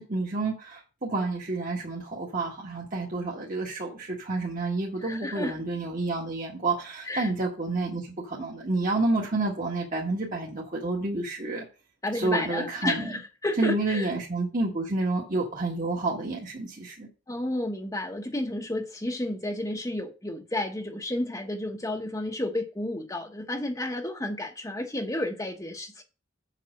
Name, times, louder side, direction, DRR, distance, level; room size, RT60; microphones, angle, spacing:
voice 1, 0.0-11.6 12.1-13.1 13.6-17.1, right 2 dB, 45° right, 1.6 m, -29 dB
voice 2, 5.0-5.5 7.1-7.3 12.0-14.1 17.3-26.0, left 1 dB, 15° left, 0.9 m, -31 dB
7.5 x 4.9 x 6.3 m
head